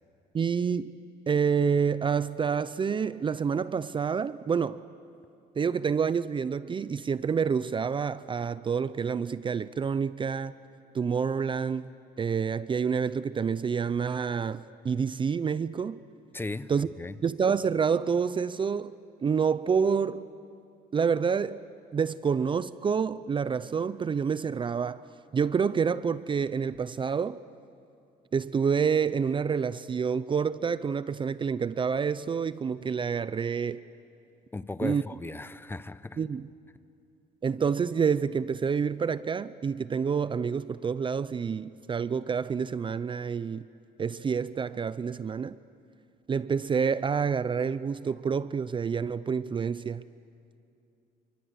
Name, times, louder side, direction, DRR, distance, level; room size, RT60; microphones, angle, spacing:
voice 1, 0.3-1.0 1.3-4.8 5.6-10.5 10.9-11.9 12.2-16.0 16.7-16.9 17.2-18.9 19.2-20.3 20.9-21.6 21.9-25.0 25.3-27.4 28.3-33.8 34.8-35.0 36.2-36.5 37.4-43.6 44.0-45.6 46.3-50.0, right 6 dB, 30° right, 0.6 m, -28 dB
voice 2, 16.3-17.1 34.5-36.2, left 2 dB, 15° left, 0.8 m, -37 dB
29.0 x 24.0 x 8.3 m
cardioid pair, 110°, 17 cm